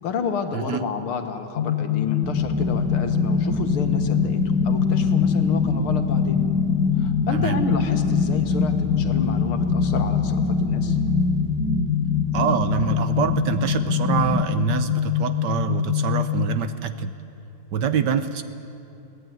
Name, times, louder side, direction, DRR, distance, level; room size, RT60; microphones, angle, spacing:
voice 1, 0.0-6.4 7.0-11.0, left 5 dB, 85° left, 7 dB, 2.3 m, -30 dB
voice 2, 0.5-0.8 7.3-7.6 12.3-17.1 17.7-18.4, right 7 dB, 65° right, 11 dB, 1.2 m, -25 dB
sound 1, 1.6-16.6, left 10 dB, 60° left, 0.8 m, -25 dB
sound 2, 2.2-14.4, left 1 dB, 15° right, 0.4 m, -26 dB
23.0 x 17.5 x 9.3 m, 2.8 s
omnidirectional pair, 2.3 m